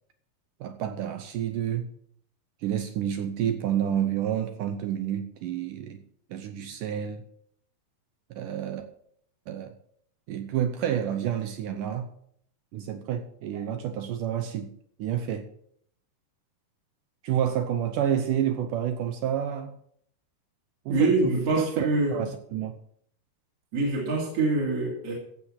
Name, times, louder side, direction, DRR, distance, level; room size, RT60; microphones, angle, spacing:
voice 1, 0.6-1.9 2.6-6.0 6.3-7.2 8.3-8.8 9.5-9.7 10.3-12.1 12.7-14.7 15.0-15.5 17.2-19.7 20.9-22.7, right 9 dB, 70° right, 2.1 m, -29 dB
voice 2, 20.9-22.2 23.7-25.1, right 3 dB, 40° right, 3.5 m, -25 dB
15.5 x 7.7 x 5.8 m
omnidirectional pair, 4.5 m